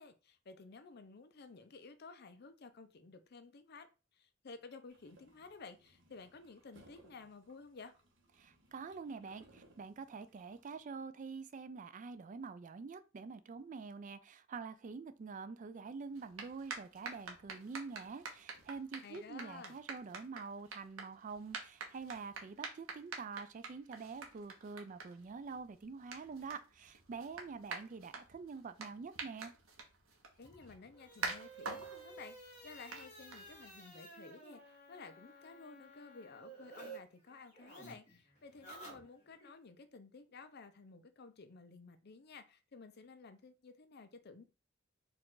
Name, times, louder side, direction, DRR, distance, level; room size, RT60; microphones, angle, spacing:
voice 1, 0.0-3.9 4.1-7.9 19.0-19.8 30.4-44.4, left 4 dB, 50° left, 0.5 m, -54 dB
sound 1, 4.9-10.8, right 1 dB, 60° right, 0.9 m, -66 dB
voice 2, 8.4-29.5, right 4 dB, 40° right, 0.3 m, -46 dB
sound 2, 16.1-33.9, right 4 dB, 85° right, 1.0 m, -48 dB
sound 3, 30.4-37.0 37.2-39.5, right 3 dB, 35° left, 1.6 m, -53 dB
4.7 x 2.5 x 3.7 m
head